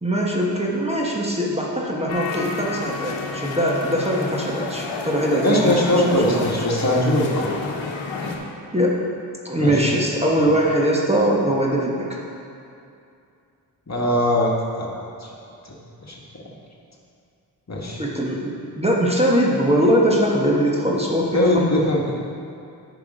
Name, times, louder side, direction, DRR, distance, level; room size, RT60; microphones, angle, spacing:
voice 1, 0.0-6.5 8.7-9.0 9.4-12.2 18.0-21.7, equal, 15° right, -3 dB, 1.5 m, -21 dB
sound 1, 2.1-8.4, left 3 dB, 70° left, 1.2 m, -30 dB
voice 2, 5.4-7.5 9.6-9.8 13.9-14.5 14.8-14.9 15.2-15.3 15.6-15.7 16.0-16.2 17.7-18.0 21.3-22.1, left 1 dB, 35° left, -2 dB, 1.7 m, -20 dB
9.4 x 5.3 x 5.0 m, 2.5 s
supercardioid pair, 40°, 46 cm